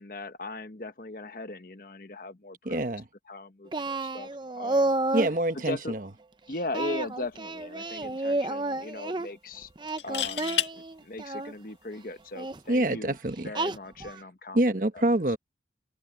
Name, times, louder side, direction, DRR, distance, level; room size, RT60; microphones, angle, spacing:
voice 1, 0.0-2.8 3.3-4.3 4.5-4.9 5.6-5.9 6.5-9.7 10.0-13.2 13.4-14.6 14.9-15.1, left 2 dB, 50° left, 1.2 m, -38 dB
voice 2, 2.6-3.1 5.1-6.0 12.7-13.5 14.5-15.4, right 1 dB, 50° right, 1.2 m, -26 dB
Singing, 3.7-5.4 6.7-9.3 9.8-11.5 12.3-12.6 13.5-14.2, right 2 dB, 25° right, 0.7 m, -30 dB
sound 1, 7.0-7.3 7.6-7.7 9.9-10.7 12.5-12.8, left 9 dB, 90° left, 2.0 m, -30 dB
head